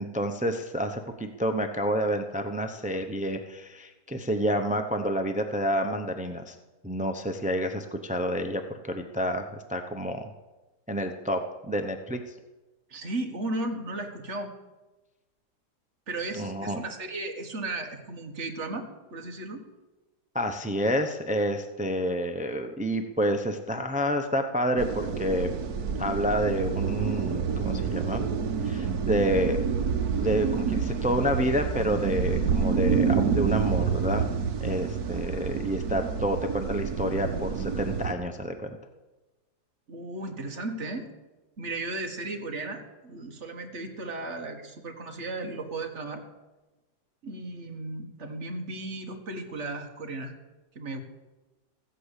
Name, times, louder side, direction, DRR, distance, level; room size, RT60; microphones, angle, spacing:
voice 1, 0.0-6.6 6.8-10.3 10.9-12.2 16.4-16.8 20.3-25.6 26.0-28.3 28.6-29.6 30.2-38.8, equal, 15° right, 5 dB, 0.3 m, -29 dB
voice 2, 12.9-14.5 16.1-19.6 39.9-41.1 41.6-46.2 47.2-50.3 50.8-51.0, right 2 dB, 45° right, 4 dB, 1.8 m, -35 dB
sound 1, 24.8-38.1, right 6 dB, 70° right, 1.5 m, -28 dB
15.0 x 8.4 x 8.2 m, 1.1 s
omnidirectional pair, 1.8 m